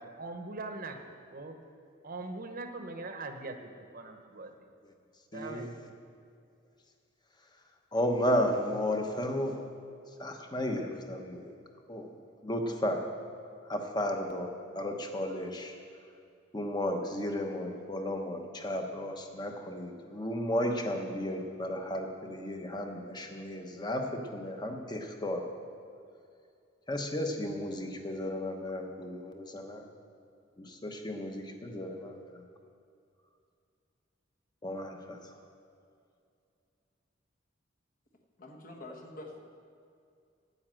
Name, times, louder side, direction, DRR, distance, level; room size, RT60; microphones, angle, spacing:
voice 1, 0.0-1.6 2.0-4.6 5.3-5.9, right 2 dB, 45° right, 5 dB, 0.9 m, -42 dB
voice 2, 5.3-5.7 7.9-9.6 10.2-11.5 11.9-12.1 12.4-13.0 13.7-15.7 16.5-25.5 26.9-29.9 30.6-32.4 34.6-35.4, left 1 dB, 20° left, 3 dB, 1.1 m, -34 dB
voice 3, 38.4-39.4, left 2 dB, 45° left, 1 dB, 1.5 m, -46 dB
9.6 x 9.4 x 7.6 m, 2.4 s
head